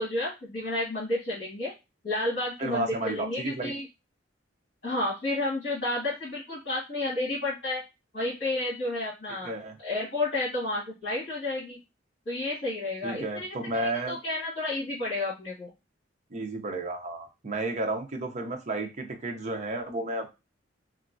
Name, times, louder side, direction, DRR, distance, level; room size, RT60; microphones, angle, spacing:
voice 1, 0.0-1.7 2.0-3.8 4.8-7.8 8.1-9.5 9.8-11.8 12.2-13.6 14.1-15.7, left 2 dB, 55° left, -8 dB, 1.5 m, -31 dB
voice 2, 2.6-3.7 9.3-9.8 13.0-14.2 16.3-20.3, right 2 dB, 40° right, 4 dB, 0.6 m, -32 dB
3.1 x 2.4 x 2.5 m, 0.26 s
head